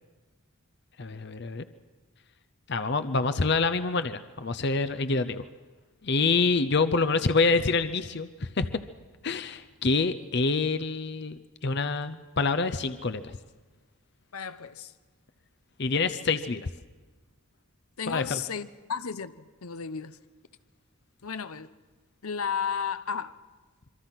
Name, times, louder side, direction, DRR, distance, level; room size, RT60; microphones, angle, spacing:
voice 1, 1.0-1.6 2.7-5.4 6.0-8.8 9.2-13.4 15.8-16.7 18.1-18.4, left 4 dB, 50° left, 0.7 m, -26 dB
voice 2, 14.3-14.9 18.0-20.2 21.2-21.7 22.2-23.4, left 6 dB, 80° left, 0.9 m, -33 dB
26.0 x 24.5 x 5.9 m
head